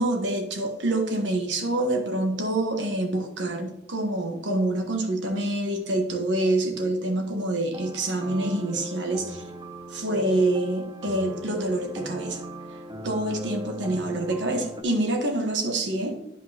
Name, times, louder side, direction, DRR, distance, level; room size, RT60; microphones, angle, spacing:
voice 1, 0.0-9.4 9.9-12.4 13.0-16.2, right 1 dB, 80° right, 5 dB, 1.2 m, -26 dB
sound 1, 7.7-14.8, right 1 dB, 25° right, 0.6 m, -38 dB
11.0 x 5.1 x 2.8 m, 0.80 s
head